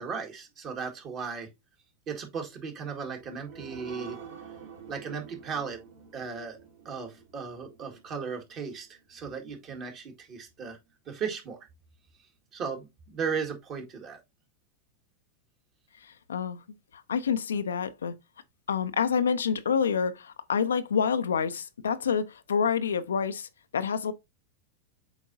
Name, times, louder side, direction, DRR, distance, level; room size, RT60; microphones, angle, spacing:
voice 1, 0.0-1.5 2.1-4.2 4.9-5.8 6.1-6.6 6.9-10.8 11.1-11.6 12.5-14.2, right 6 dB, 35° right, 1.8 m, -36 dB
sound 1, 3.0-10.0 10.4-10.5 10.9-11.0, right 7 dB, 65° right, 2.8 m, -49 dB
voice 2, 17.1-18.1 18.7-24.1, left 6 dB, 70° left, 0.5 m, -27 dB
8.0 x 4.4 x 2.7 m
figure-of-eight pair, 90°, 0 cm